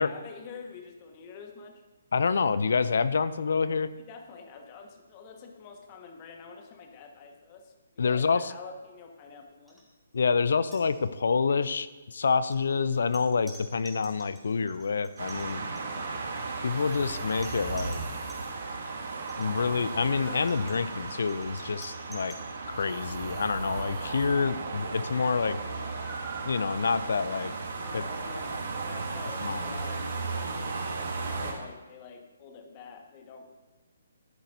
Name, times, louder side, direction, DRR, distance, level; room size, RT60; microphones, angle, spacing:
voice 1, 0.0-1.8 4.1-9.8 15.8-16.2 27.8-30.8 31.1-33.4, left 5 dB, 30° left, 4 dB, 1.4 m, -47 dB
voice 2, 2.1-3.9 8.0-8.5 10.1-15.6 16.6-18.0 19.4-22.3 22.7-25.6 26.4-27.5 27.9-28.0 29.4-29.7, left 5 dB, 60° left, 15 dB, 0.5 m, -27 dB
sound 1, 9.7-9.8 10.1-10.3 10.6-11.4 12.2-18.4 19.2-22.5, right 1 dB, ahead, 2.2 m, -52 dB
sound 2, 14.7-15.0 16.7-18.6 20.0-21.1 22.7-24.5 25.9-27.1, right 3 dB, 30° right, 2.3 m, -41 dB
sound 3, 15.2-31.5, right 4 dB, 55° right, 2.8 m, -36 dB
13.5 x 10.5 x 2.7 m, 1.2 s
figure-of-eight pair, 135°, 0 cm